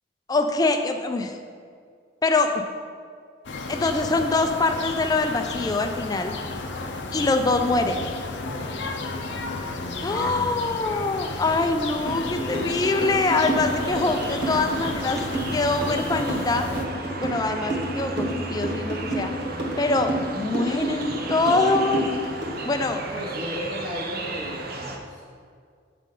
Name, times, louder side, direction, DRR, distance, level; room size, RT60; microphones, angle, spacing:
voice 1, 0.3-1.4 2.2-2.6 3.7-6.3 7.1-8.1 10.0-16.7 17.2-19.3 19.8-22.1 22.6-23.0, left 3 dB, 20° left, 5 dB, 0.3 m, -24 dB
sound 1, 3.4-16.9, left 3 dB, 70° left, 0.6 m, -33 dB
voice 2, 8.4-9.1 23.1-25.2, left 1 dB, 25° right, -6 dB, 0.9 m, -35 dB
sound 2, 12.1-22.6, right 1 dB, 75° right, 1.4 m, -29 dB
sound 3, 13.6-25.0, right 2 dB, 50° right, 0.6 m, -34 dB
7.5 x 5.2 x 3.7 m, 2.1 s
head